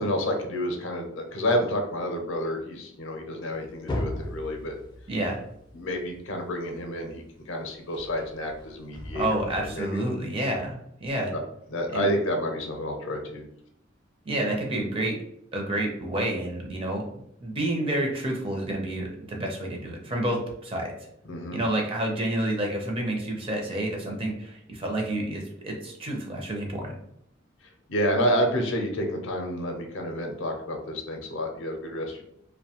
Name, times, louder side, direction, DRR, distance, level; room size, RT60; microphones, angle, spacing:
voice 1, 0.0-4.8 5.7-10.0 11.3-11.4 11.7-13.4 21.2-21.6 27.6-32.2, equal, 70° left, 3 dB, 0.5 m, -29 dB
sound 1, 3.5-6.8 7.9-9.8, left 1 dB, 25° left, 0.4 m, -37 dB
voice 2, 5.1-5.4 9.1-11.4 11.9-12.1 14.3-15.2 15.5-20.9 21.5-27.0, right 1 dB, 30° right, 1 dB, 0.5 m, -29 dB
2.6 x 2.1 x 2.8 m, 0.74 s
head